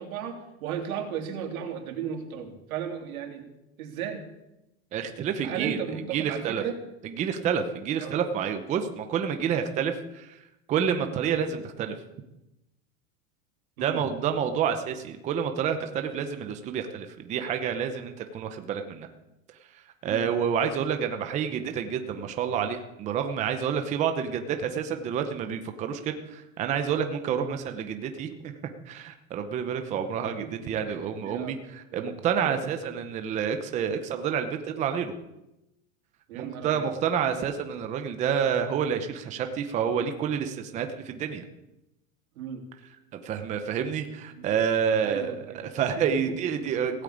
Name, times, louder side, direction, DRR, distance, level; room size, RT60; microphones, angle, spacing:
voice 1, 0.0-3.5 3.8-4.2 5.4-6.7 8.0-8.1 13.8-14.0 20.1-20.3 27.3-27.5 30.4-30.5 30.9-31.0 31.2-31.5 31.9-32.2 32.4-32.6 36.3-36.9 42.4-42.6 44.4-44.5 45.0-45.8 46.3-46.4 46.6-46.7, right 8 dB, 80° right, 4 dB, 3.2 m, -35 dB
voice 2, 4.9-5.8 6.1-6.6 7.0-10.4 10.7-11.9 13.8-19.1 19.7-28.5 28.9-35.1 36.3-41.4 43.1-47.0, right 7 dB, 15° right, 7 dB, 0.8 m, -29 dB
17.0 x 9.0 x 8.6 m, 0.92 s
supercardioid pair, 170°, 42 cm